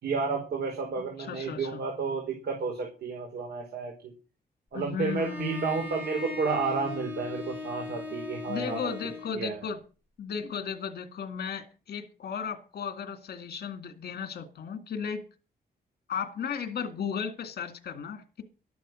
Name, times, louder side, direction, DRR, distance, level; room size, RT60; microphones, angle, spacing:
voice 1, 0.0-4.1 4.7-8.8 9.3-9.6, right 4 dB, 75° right, 4.9 m, -31 dB
voice 2, 1.0-1.8 4.7-5.8 8.5-9.8 10.2-15.2 16.1-18.4, left 6 dB, 70° left, 2.1 m, -35 dB
Bowed string instrument, 5.0-9.4, left 3 dB, 10° right, 6.2 m, -39 dB
13.0 x 11.0 x 6.3 m
wide cardioid pair, 155°, 17 cm